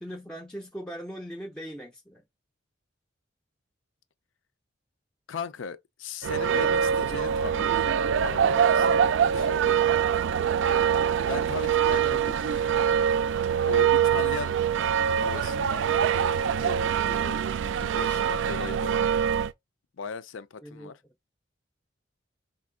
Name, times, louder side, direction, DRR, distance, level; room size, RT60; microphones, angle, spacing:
voice 1, 0.0-2.2 8.9-9.1 20.6-20.9, equal, 5° left, 0.4 m, -41 dB
voice 2, 5.3-9.9 11.3-12.8 13.7-14.6 15.1-19.0 20.0-21.0, left 5 dB, 90° left, 0.5 m, -38 dB
sound 1, 6.2-19.5, right 8 dB, 70° right, 0.3 m, -24 dB
5.1 x 2.5 x 3.7 m
head